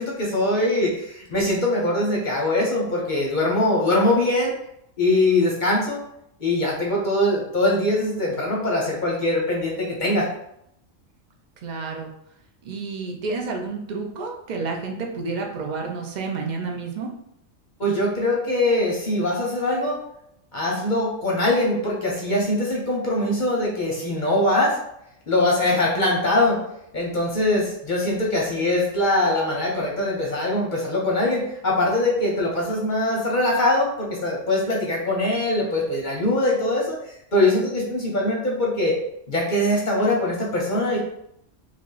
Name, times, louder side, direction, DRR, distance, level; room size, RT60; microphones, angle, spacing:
voice 1, 0.0-4.5 5.0-6.0 6.4-10.3 17.8-20.0 20.5-24.8 25.3-26.6 26.9-37.0 37.3-39.0 39.3-41.0, left 1 dB, 50° left, -2 dB, 0.7 m, -22 dB
voice 2, 11.6-12.1 12.6-17.1, right 4 dB, 55° right, 1 dB, 0.5 m, -30 dB
3.2 x 2.4 x 3.8 m, 0.78 s
omnidirectional pair, 1.3 m